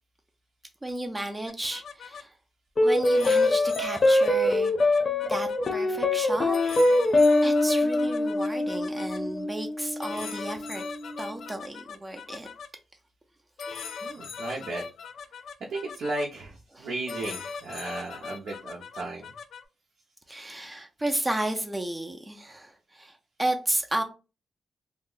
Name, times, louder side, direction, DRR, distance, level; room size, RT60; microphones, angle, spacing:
voice 1, 0.8-2.3 2.8-4.9 5.3-6.6 7.4-10.8 11.2-12.5 16.7-16.9 20.3-24.0, right 1 dB, 15° right, 0.4 m, -33 dB
sound 1, 1.5-2.2 3.0-5.7 6.5-9.2 10.0-12.7 13.6-16.3 17.1-19.6, left 5 dB, 85° left, 0.3 m, -40 dB
sound 2, 2.8-11.4, left 2 dB, 35° left, 0.5 m, -24 dB
voice 2, 14.0-14.8 15.7-19.3, right 2 dB, 80° right, 0.5 m, -35 dB
2.6 x 2.0 x 3.7 m
wide cardioid pair, 155°, 0 cm